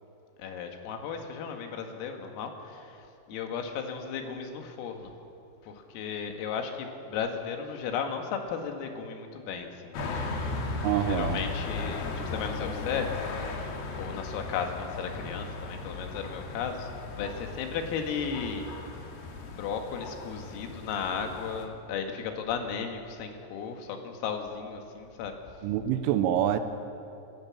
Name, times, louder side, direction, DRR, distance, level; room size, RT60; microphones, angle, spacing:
voice 1, 0.4-5.1 5.6-9.9 11.0-18.8 19.4-25.4, left 6 dB, 85° left, 4 dB, 4.4 m, -35 dB
sound 1, 9.9-21.7, left 3 dB, 60° left, 3.3 m, -36 dB
voice 2, 10.8-11.4 25.6-26.6, right 11 dB, 80° right, 9 dB, 3.3 m, -26 dB
25.5 x 14.5 x 7.3 m, 2.7 s
omnidirectional pair, 5.9 m